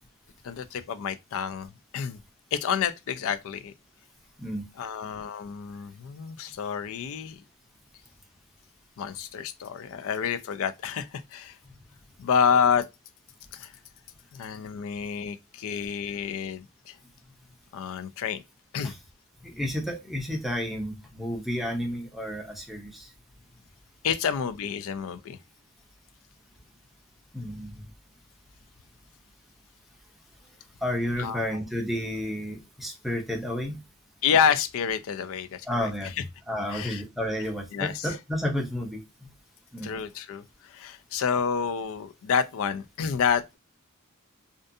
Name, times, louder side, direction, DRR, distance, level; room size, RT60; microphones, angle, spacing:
voice 1, 0.4-2.2 2.5-3.7 4.8-7.4 9.0-11.6 12.2-12.9 13.5-13.7 14.3-17.0 17.7-18.4 18.7-18.9 24.0-25.4 31.2-31.6 34.2-35.9 36.7-37.0 37.7-38.1 39.8-43.6, left 7 dB, 65° left, 0.3 m, -28 dB
voice 2, 19.4-23.1 27.3-27.9 30.8-33.8 35.7-36.1 36.5-39.0 39.7-39.9, left 1 dB, ahead, 0.5 m, -31 dB
2.5 x 2.2 x 2.6 m
head